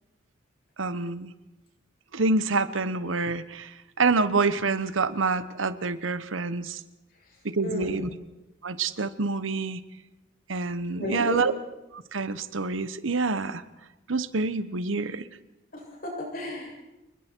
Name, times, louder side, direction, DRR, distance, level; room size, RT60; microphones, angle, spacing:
voice 1, 0.8-1.3 2.1-6.8 7.4-8.1 8.6-9.8 10.5-11.5 11.9-13.6 14.1-15.3, right 3 dB, 90° right, 14 dB, 1.1 m, -27 dB
voice 2, 7.6-8.0 10.9-11.5 15.7-16.7, left 1 dB, 50° left, 0 dB, 7.6 m, -33 dB
29.0 x 21.0 x 4.6 m, 1.0 s
head